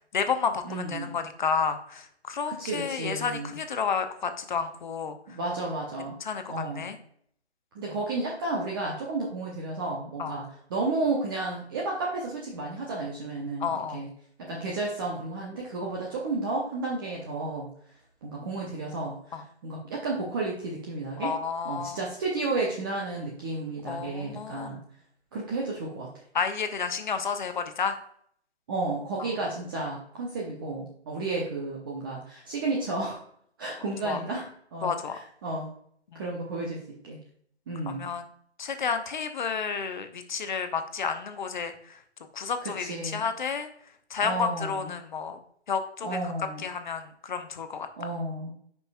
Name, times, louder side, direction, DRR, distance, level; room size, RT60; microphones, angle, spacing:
voice 1, 0.1-5.2 6.2-7.0 10.2-10.3 13.6-14.0 19.3-19.4 21.2-22.0 23.9-24.8 26.3-28.0 29.2-29.3 34.0-34.2 34.8-35.2 36.1-36.2 37.9-38.2 38.6-42.0 42.3-43.7 44.1-45.4 45.7-46.2 46.6-47.9, left 6 dB, 45° left, 8 dB, 0.8 m, -31 dB
voice 2, 0.6-1.2 2.5-3.6 5.3-6.1 6.5-6.9 7.7-14.1 14.4-17.7 18.2-21.3 21.6-24.8 25.3-26.1 28.7-33.2 33.6-34.9 35.4-35.7 36.1-37.2 37.7-38.1 42.6-43.2 44.2-44.9 46.0-46.7 48.0-48.5, right 2 dB, 20° right, -3 dB, 0.8 m, -32 dB
9.0 x 5.4 x 2.3 m, 0.64 s
figure-of-eight pair, 150°, 34 cm